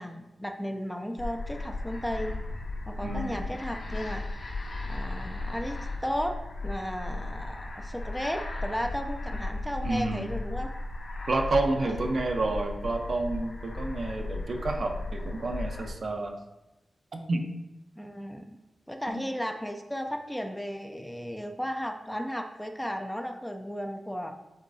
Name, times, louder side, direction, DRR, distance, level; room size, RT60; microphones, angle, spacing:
voice 1, 0.0-2.4 2.9-4.4 4.8-10.7 11.8-12.0 18.0-18.6 18.9-24.4, equal, 5° left, 4 dB, 0.4 m, -35 dB
sound 1, 1.2-15.9, left 2 dB, 75° left, 1.5 m, -36 dB
voice 2, 3.0-3.5 9.8-10.3 11.3-16.3 17.1-17.4 19.1-19.2, right 2 dB, 55° right, 3 dB, 0.7 m, -30 dB
8.0 x 4.5 x 2.7 m, 0.96 s
wide cardioid pair, 130°, 0 cm